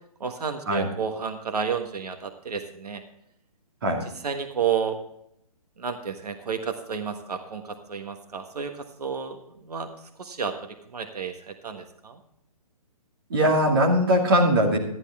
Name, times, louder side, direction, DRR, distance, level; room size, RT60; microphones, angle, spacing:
voice 1, 0.2-3.0 4.2-5.0 5.8-9.9 10.2-12.2, right 6 dB, 85° right, 6 dB, 1.5 m, -31 dB
voice 2, 13.3-14.8, equal, 35° right, 0 dB, 2.4 m, -20 dB
12.5 x 11.0 x 3.5 m, 0.74 s
hypercardioid pair, 180°, 20 cm